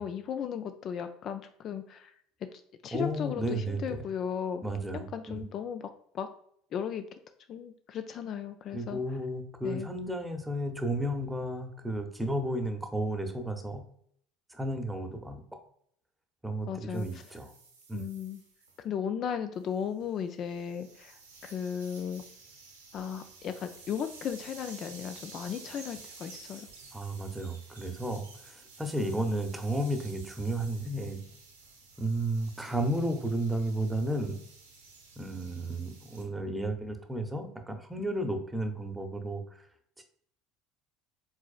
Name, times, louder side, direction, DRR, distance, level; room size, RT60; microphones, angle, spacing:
voice 1, 0.0-2.1 2.8-4.6 5.1-5.9 6.1-6.3 6.7-7.0 7.5-9.0 9.6-9.9 16.7-17.2 17.9-18.4 18.8-21.1 21.4-22.2 22.9-26.7, left 8 dB, 45° left, 9 dB, 0.3 m, -35 dB
voice 2, 2.9-4.0 4.6-5.4 8.7-13.8 14.5-15.4 16.4-17.5 17.9-18.1 26.9-31.2 32.0-34.4 35.2-39.4 40.0-40.1, right 1 dB, 10° right, 6 dB, 0.7 m, -33 dB
sound 1, 16.9-18.8 19.6-36.2, right 4 dB, 80° right, 0.9 m, -52 dB
4.7 x 3.9 x 2.3 m, 0.66 s
figure-of-eight pair, 65°, 0 cm